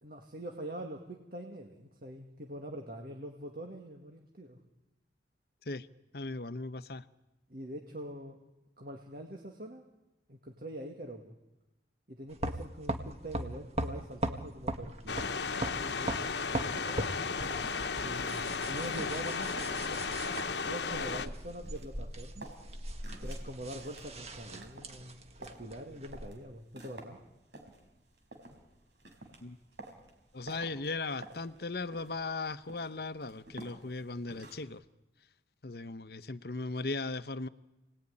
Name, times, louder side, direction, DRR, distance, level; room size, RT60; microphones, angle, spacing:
voice 1, 0.0-4.6 7.5-8.4 8.8-9.8 10.3-11.4 12.1-17.0 18.0-20.0 20.6-22.5 23.2-27.2, right 1 dB, 55° right, 3 dB, 2.1 m, -44 dB
voice 2, 6.1-7.0 29.4-29.6 30.3-34.8 35.6-37.5, left 3 dB, 60° left, 13 dB, 0.9 m, -37 dB
sound 1, 12.3-26.3, right 1 dB, 35° right, 1.7 m, -40 dB
sound 2, 15.1-21.3, left 5 dB, 75° left, 1.1 m, -34 dB
sound 3, 16.3-34.8, right 2 dB, 80° right, 4.7 m, -51 dB
28.5 x 19.5 x 9.9 m, 1.0 s
head